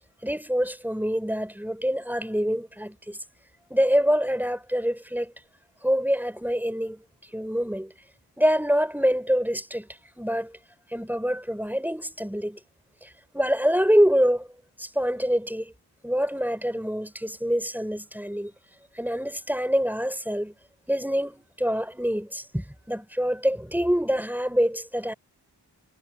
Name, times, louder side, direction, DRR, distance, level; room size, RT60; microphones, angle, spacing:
voice 1, 0.2-3.2 3.7-5.3 5.8-7.0 7.3-7.9 8.4-9.9 10.2-10.5 10.9-12.6 13.0-14.5 14.8-15.7 16.0-18.5 18.9-20.5 20.9-25.1, equal, 5° right, 5.4 m, -25 dB
cardioid pair, 45°, 43 cm